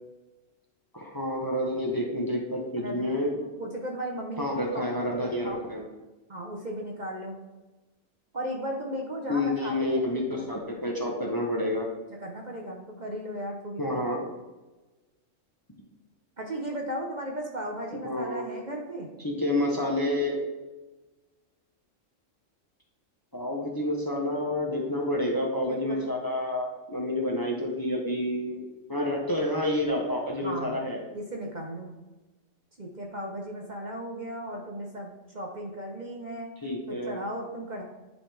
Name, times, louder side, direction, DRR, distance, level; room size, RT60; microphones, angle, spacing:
voice 1, 0.9-3.3 4.4-5.8 9.3-11.9 13.8-14.2 18.0-18.5 19.2-20.4 23.3-31.0 36.6-37.2, left 1 dB, 20° left, -1 dB, 1.0 m, -29 dB
voice 2, 2.8-3.3 3.6-5.6 6.3-7.4 8.3-10.5 12.2-14.0 16.4-19.1 25.2-25.3 25.7-26.1 30.4-31.9 32.8-36.5 36.9-37.8, equal, 40° right, 0 dB, 1.0 m, -36 dB
10.5 x 3.9 x 3.4 m, 1.1 s
omnidirectional pair, 1.3 m